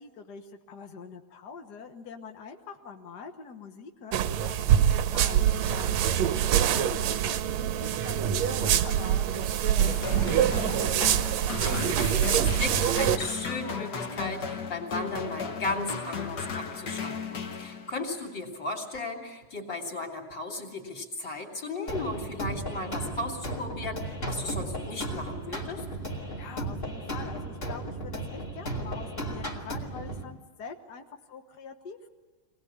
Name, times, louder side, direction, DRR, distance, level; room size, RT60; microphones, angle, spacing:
voice 1, 0.0-4.1 4.4-6.1 6.6-10.8 26.4-32.1, left 5 dB, 65° left, 4 dB, 1.0 m, -44 dB
sound 1, 4.1-13.2, right 10 dB, 70° right, 1.8 m, -25 dB
sound 2, 9.8-18.2, left 5 dB, 85° left, 0.9 m, -35 dB
voice 2, 11.5-25.9, left 2 dB, 35° left, 1 dB, 3.5 m, -35 dB
sound 3, 21.9-30.2, right 1 dB, 20° left, 2.3 m, -35 dB
24.5 x 19.0 x 8.6 m, 1.3 s
omnidirectional pair, 3.8 m